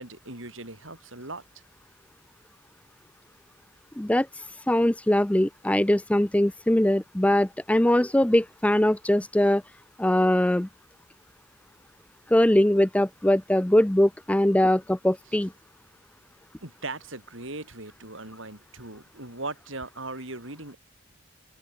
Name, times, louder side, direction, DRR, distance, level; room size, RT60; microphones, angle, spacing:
voice 1, 0.0-1.4 16.6-20.8, right 2 dB, 65° right, 7.6 m, -38 dB
voice 2, 4.0-9.6 10.0-10.7 12.3-15.5, left 1 dB, 5° left, 0.4 m, -22 dB
open air
head